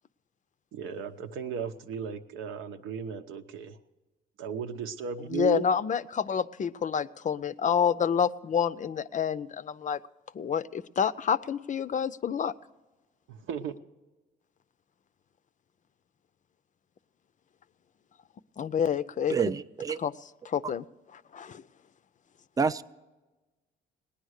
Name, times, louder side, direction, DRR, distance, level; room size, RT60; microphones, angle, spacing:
voice 1, 0.7-3.8 4.4-5.6 13.3-13.8, right 7 dB, 85° right, 7 dB, 0.9 m, -35 dB
voice 2, 5.3-10.0 10.3-12.5 18.6-19.4 20.0-20.1 20.4-20.8 21.1-21.6, left 7 dB, 40° left, 14 dB, 0.5 m, -28 dB
voice 3, 19.3-20.0 22.6-22.8, right 5 dB, 20° right, 13 dB, 0.4 m, -27 dB
18.0 x 10.0 x 6.5 m, 1.2 s
cardioid pair, 90°, 20 cm